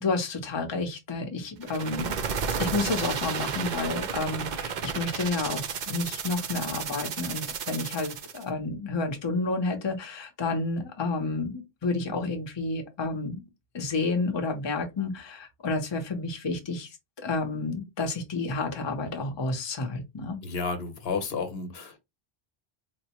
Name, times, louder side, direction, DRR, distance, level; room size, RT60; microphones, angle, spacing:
voice 1, 0.0-2.2 2.6-13.4 13.7-20.4, left 3 dB, 30° left, 0.7 m, -30 dB
sound 1, 1.6-8.4, right 6 dB, 55° right, 0.6 m, -32 dB
voice 2, 20.4-22.0, left 4 dB, 75° left, 1.0 m, -32 dB
4.3 x 2.1 x 2.9 m
omnidirectional pair, 1.0 m